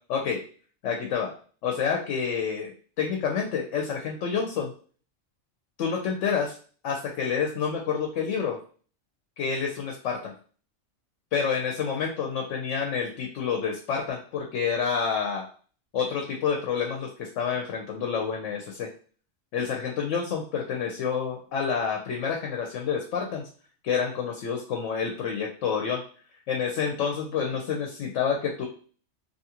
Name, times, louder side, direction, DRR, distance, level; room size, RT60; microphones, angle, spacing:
voice 1, 0.1-0.4 0.8-1.3 1.6-2.7 3.0-4.7 5.8-6.5 6.8-8.6 9.4-10.3 11.3-15.4 15.9-18.9 19.5-23.5 23.8-26.0 26.5-28.7, left 6 dB, 80° left, 1 dB, 0.9 m, -28 dB
2.8 x 2.4 x 2.8 m, 0.42 s
omnidirectional pair, 1.3 m